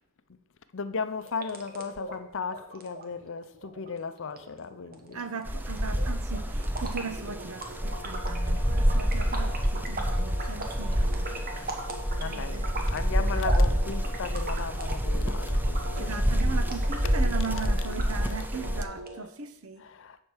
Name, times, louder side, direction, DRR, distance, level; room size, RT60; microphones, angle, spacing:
voice 1, 0.7-5.2 12.2-16.2 17.5-17.7 19.8-20.2, left 5 dB, 60° left, 0.6 m, -36 dB
sound 1, 1.2-19.2, right 1 dB, 45° right, 1.4 m, -40 dB
voice 2, 5.1-11.3 11.6-11.7 12.2-12.7 13.3-13.4 16.0-19.8, right 5 dB, 65° right, 0.9 m, -38 dB
sound 2, 5.5-18.8, equal, 10° right, 0.5 m, -28 dB
11.0 x 4.6 x 7.2 m
head